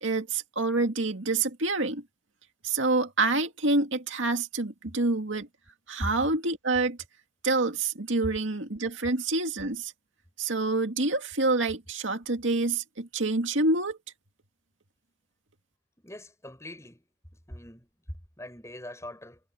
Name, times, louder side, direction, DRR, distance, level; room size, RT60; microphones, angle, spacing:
voice 1, 0.0-2.0 2.6-5.5 5.9-7.0 7.4-9.9 10.4-14.0, right 3 dB, 70° right, 2.2 m, -27 dB
voice 2, 16.0-17.0 17.5-17.9 18.4-19.4, left 1 dB, 15° left, 7.2 m, -40 dB
head